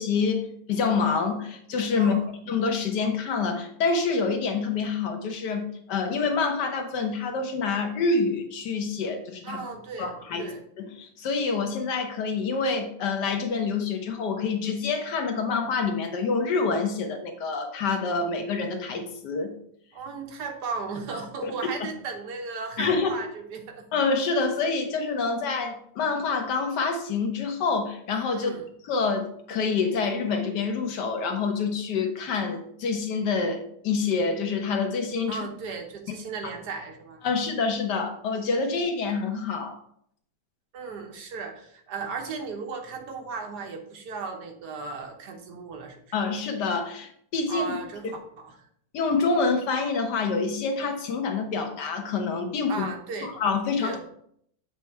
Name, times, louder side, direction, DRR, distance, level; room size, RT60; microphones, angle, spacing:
voice 1, 0.0-2.1 2.5-9.6 10.0-10.5 10.8-19.5 21.4-21.5 21.8-21.9 22.8-23.2 23.9-28.5 28.8-35.4 36.4-36.5 37.2-39.8 46.1-47.7 48.9-52.9 53.2-54.0, left 4 dB, 90° left, 5 dB, 1.5 m, -27 dB
voice 2, 9.4-10.6 19.9-23.8 28.3-28.6 35.3-37.2 40.7-46.0 47.5-48.5 52.7-53.3 53.8-54.0, right 4 dB, 80° right, 3 dB, 1.6 m, -36 dB
7.4 x 3.5 x 4.3 m, 0.67 s
omnidirectional pair, 1.8 m